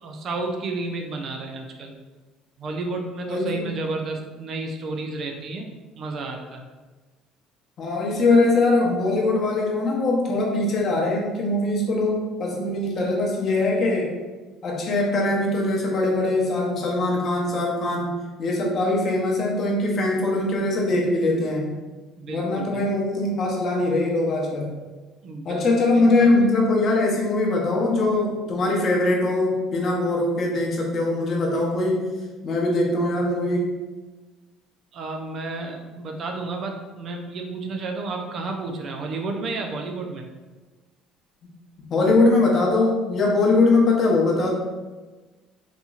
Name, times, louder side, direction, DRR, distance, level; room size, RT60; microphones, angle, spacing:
voice 1, 0.0-1.9 2.6-6.7 22.2-22.8 25.2-25.6 26.0-26.3 34.9-40.3, right 3 dB, 45° right, 3 dB, 0.4 m, -31 dB
voice 2, 3.3-3.7 7.8-14.1 14.6-18.1 18.4-21.7 22.3-24.7 25.4-32.1 32.4-33.7 41.9-44.5, left 2 dB, 40° left, -2 dB, 0.8 m, -22 dB
4.1 x 2.8 x 2.4 m, 1.3 s
cardioid pair, 140°, 0 cm